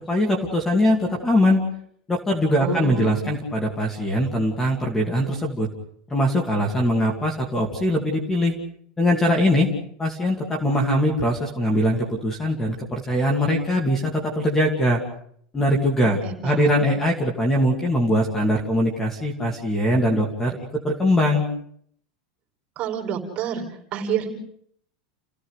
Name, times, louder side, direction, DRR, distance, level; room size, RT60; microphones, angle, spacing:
voice 1, 0.1-1.6 2.1-5.7 6.1-8.5 9.0-9.7 10.0-15.0 15.5-20.6 20.8-21.5, equal, 10° left, 2 dB, 2.6 m, -21 dB
voice 2, 2.6-3.2 16.2-16.9 22.8-23.6 23.9-24.3, right 7 dB, 30° right, 2 dB, 4.9 m, -28 dB
29.5 x 16.0 x 6.6 m, 0.65 s
supercardioid pair, 170°, 4 cm